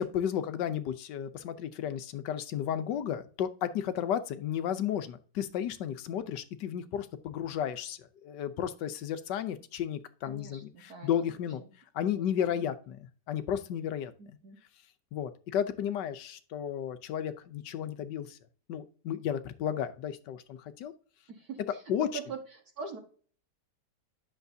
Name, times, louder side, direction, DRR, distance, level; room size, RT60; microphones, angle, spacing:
voice 1, 0.0-11.6 11.9-14.1 15.1-18.4 18.7-20.9 21.9-22.1, left 9 dB, 75° left, 12 dB, 1.3 m, -33 dB
voice 2, 10.2-11.7 12.1-12.6 14.2-14.6 21.3-23.0, right 5 dB, 55° right, 1 dB, 2.1 m, -44 dB
10.5 x 6.8 x 2.7 m, 0.42 s
omnidirectional pair, 1.9 m